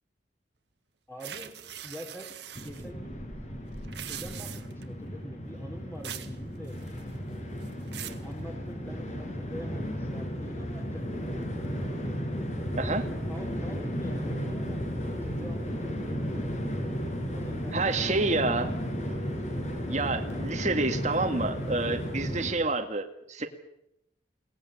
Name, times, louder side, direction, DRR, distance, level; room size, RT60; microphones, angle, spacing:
voice 1, 1.1-1.5 1.8-3.2 3.9-6.8 7.5-11.3 13.3-16.8 17.3-18.0, equal, 15° left, 0 dB, 3.6 m, -45 dB
sound 1, 1.2-2.8 3.8-4.8 6.0-6.4 6.7-7.2 7.6-8.3, right 10 dB, 75° right, 1.8 m, -41 dB
Train, 2.6-22.5, equal, 40° left, 6.0 m, -34 dB
voice 2, 12.7-13.1 17.7-18.7 19.9-23.5, right 3 dB, 40° right, 4 dB, 1.9 m, -28 dB
22.5 x 18.5 x 9.9 m, 0.81 s
head